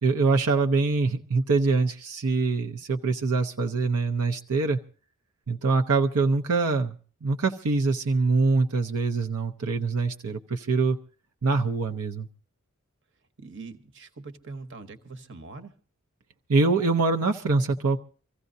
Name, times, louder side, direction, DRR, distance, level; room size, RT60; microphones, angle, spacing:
voice 1, 0.0-4.8 5.5-11.0 11.4-12.3 16.5-18.0, right 3 dB, 85° right, 4 dB, 0.7 m, -24 dB
voice 2, 13.4-15.8, right 3 dB, 55° right, 9 dB, 1.0 m, -42 dB
25.0 x 15.5 x 2.7 m, 0.40 s
head